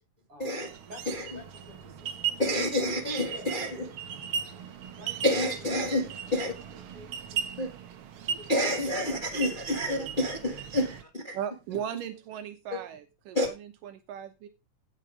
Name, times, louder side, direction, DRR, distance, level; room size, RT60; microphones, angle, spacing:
voice 1, 0.3-2.4 3.2-3.5 4.1-4.6 4.9-7.5 8.3-8.6 8.9-10.6 11.8-11.9 12.9-13.0, right 2 dB, 40° right, 8.2 m, -51 dB
sound 1, 0.6-11.0, right 7 dB, 65° right, 1.4 m, -38 dB
voice 2, 2.4-3.7 5.2-6.5 7.6-7.7 8.5-11.4 12.7-12.8 13.3-13.5, left 1 dB, 20° left, 1.3 m, -28 dB
voice 3, 11.3-14.5, right 9 dB, 80° right, 2.7 m, -37 dB
16.5 x 6.5 x 5.1 m
omnidirectional pair, 3.7 m